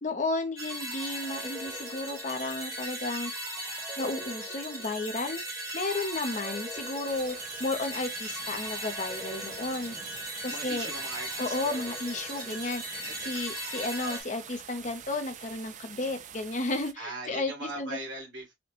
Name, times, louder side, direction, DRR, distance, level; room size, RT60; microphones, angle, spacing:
voice 1, 0.0-3.3 4.0-5.4 5.7-10.0 10.4-10.9 11.4-18.0, left 2 dB, 35° left, 0.6 m, -33 dB
sound 1, 0.6-14.2, right 1 dB, 15° right, 1.0 m, -37 dB
sound 2, 7.1-16.9, right 8 dB, 40° right, 0.3 m, -46 dB
voice 2, 10.5-11.8 12.2-12.6 13.0-13.3 17.0-18.5, right 2 dB, 65° right, 1.5 m, -40 dB
4.2 x 2.1 x 2.8 m
head